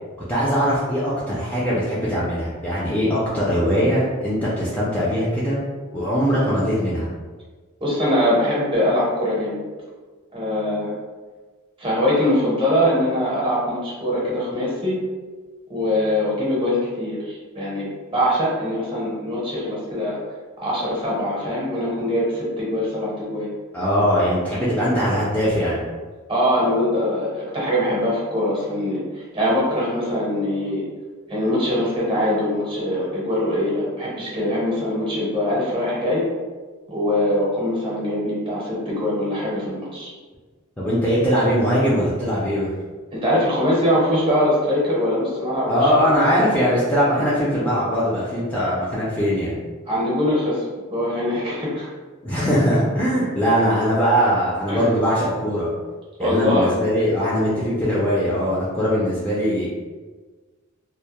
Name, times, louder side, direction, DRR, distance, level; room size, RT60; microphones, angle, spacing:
voice 1, 0.3-5.6 5.9-7.1 23.7-25.8 40.8-42.7 45.7-49.6 52.2-55.7 56.2-59.7, equal, 10° left, -8 dB, 0.3 m, -21 dB
voice 2, 7.8-9.6 10.3-10.9 11.8-15.0 15.7-20.2 20.6-23.5 26.3-30.8 31.3-36.2 36.9-40.1 43.1-46.2 49.8-50.6 50.9-51.9 54.7-54.9 56.2-56.8, left 1 dB, 25° right, -6 dB, 0.7 m, -22 dB
2.1 x 2.0 x 2.8 m, 1.4 s
head